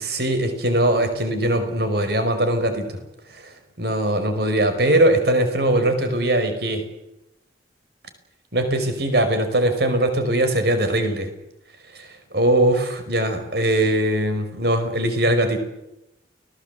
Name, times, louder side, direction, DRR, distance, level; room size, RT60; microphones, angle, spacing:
voice 1, 0.0-3.0 3.8-6.8 8.5-11.3 12.0-15.6, right 1 dB, 60° right, 8 dB, 5.0 m, -21 dB
30.0 x 19.0 x 8.2 m, 0.89 s
head